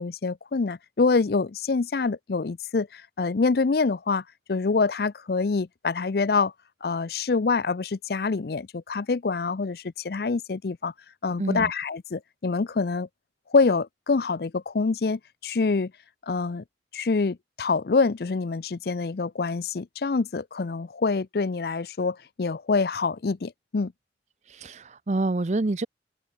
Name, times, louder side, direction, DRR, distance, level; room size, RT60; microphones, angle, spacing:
voice 1, 0.0-4.2 4.5-6.5 6.8-10.9 11.2-13.1 13.5-15.9 16.3-16.6 16.9-23.9, left 4 dB, 60° left, 0.5 m, -26 dB
voice 2, 11.4-11.7 24.5-25.9, right 2 dB, 40° right, 0.6 m, -27 dB
open air
head